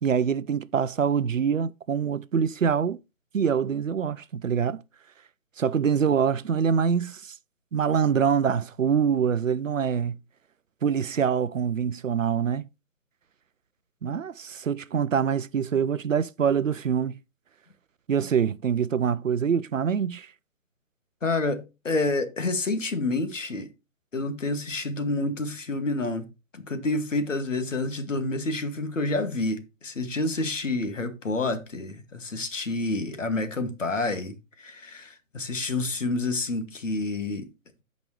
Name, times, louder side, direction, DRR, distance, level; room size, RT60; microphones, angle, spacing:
voice 1, 0.0-3.0 3.3-4.8 5.6-7.4 7.7-10.2 10.8-12.6 14.0-17.2 18.1-20.3, right 7 dB, 65° right, 0.6 m, -25 dB
voice 2, 21.2-23.7 24.1-26.3 26.5-37.5, left 2 dB, 65° left, 2.0 m, -28 dB
16.0 x 5.3 x 3.1 m
figure-of-eight pair, 150°, 41 cm